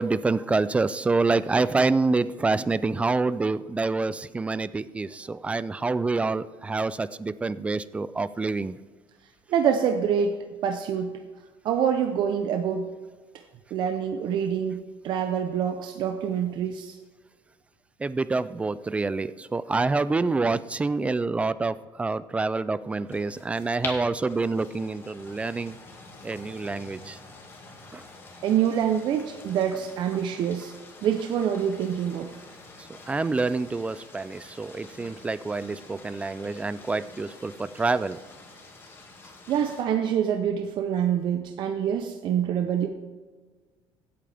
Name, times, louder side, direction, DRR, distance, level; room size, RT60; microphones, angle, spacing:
voice 1, 0.0-8.8 18.0-25.8 26.2-27.2 27.9-28.0 32.9-38.2, right 3 dB, 10° right, 16 dB, 0.3 m, -27 dB
voice 2, 9.5-10.4 10.6-11.2 11.6-12.9 13.7-17.0 28.4-30.7 31.0-32.4 39.5-42.9, right 8 dB, 50° right, 6 dB, 0.8 m, -26 dB
sound 1, 23.1-39.8, left 3 dB, 25° left, 2.1 m, -46 dB
16.5 x 8.8 x 3.5 m, 1.4 s
cardioid pair, 145°, 10 cm